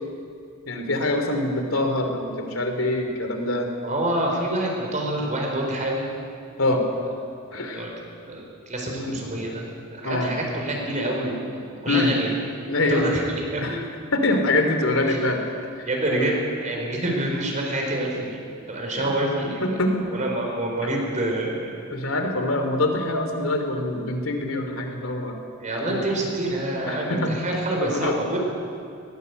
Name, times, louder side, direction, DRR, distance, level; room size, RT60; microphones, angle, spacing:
voice 1, 0.7-3.7 6.6-6.8 7.5-7.8 8.9-9.2 10.0-10.3 11.9-12.1 12.7-13.1 13.6-13.8 14.1-15.4 15.8-16.3 19.0-19.2 19.6-20.0 21.9-25.4 25.9-26.0 26.9-27.3 27.8-28.4, left 2 dB, 75° left, 5 dB, 3.2 m, -24 dB
voice 2, 3.8-6.1 7.7-7.9 8.3-11.4 11.8-12.3 12.9-13.8 15.1-15.2 15.9-18.4 18.7-21.8 25.6-28.4, right 1 dB, 35° right, 0 dB, 4.6 m, -27 dB
21.0 x 18.0 x 8.2 m, 2.5 s
head